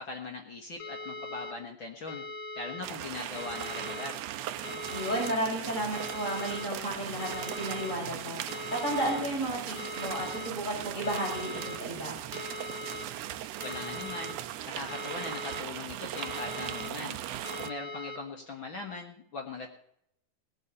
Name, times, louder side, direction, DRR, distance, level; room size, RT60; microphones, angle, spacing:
voice 1, 0.0-2.2 2.6-4.2 13.6-14.3 14.7-17.2 17.6-19.7, left 3 dB, 50° left, 2 dB, 1.8 m, -40 dB
sound 1, 0.8-1.5 2.1-2.8 3.4-4.1 4.6-5.4 5.9-6.6 7.2-7.9 8.5-9.2 9.8-10.5 11.0-11.8 12.3-13.1 13.6-14.3 14.9-15.6 16.2-16.9 17.4-18.2, left 2 dB, 70° left, 2.6 m, -40 dB
sound 2, 2.8-17.7, right 12 dB, 80° right, 1.5 m, -39 dB
voice 2, 4.9-8.5 8.8-12.2, right 1 dB, 15° left, -4 dB, 6.2 m, -33 dB
18.5 x 6.7 x 8.2 m, 0.71 s
omnidirectional pair, 3.8 m